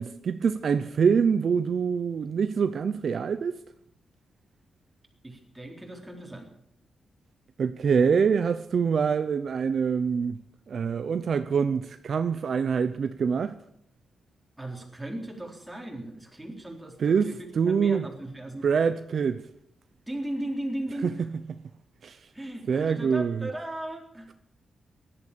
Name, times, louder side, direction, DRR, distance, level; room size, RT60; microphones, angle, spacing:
voice 1, 0.0-3.5 7.6-10.4 10.7-13.5 17.0-17.3 17.6-18.0 18.6-19.4 21.0-21.1 22.0-22.2 22.7-23.5, right 6 dB, 55° right, 0.8 m, -25 dB
voice 2, 5.2-6.5 14.6-18.7 20.1-21.3 22.3-24.3, right 1 dB, 10° right, 3.9 m, -37 dB
17.5 x 12.0 x 6.9 m
wide cardioid pair, 130°, 0 cm